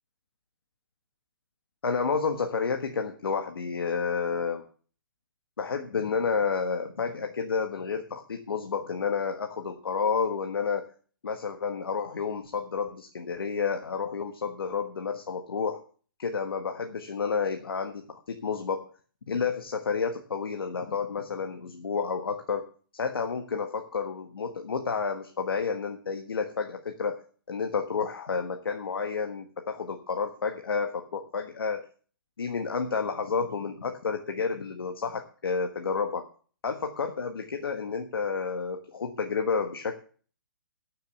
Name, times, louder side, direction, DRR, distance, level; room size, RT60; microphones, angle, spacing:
voice 1, 1.8-4.6 5.6-10.9 11.2-15.8 16.2-18.9 19.3-22.7 22.9-27.2 27.5-31.9 32.4-36.2 36.6-40.0, left 5 dB, 85° left, 4 dB, 1.6 m, -30 dB
13.5 x 6.8 x 6.7 m, 0.43 s
hypercardioid pair, 155°, 12 cm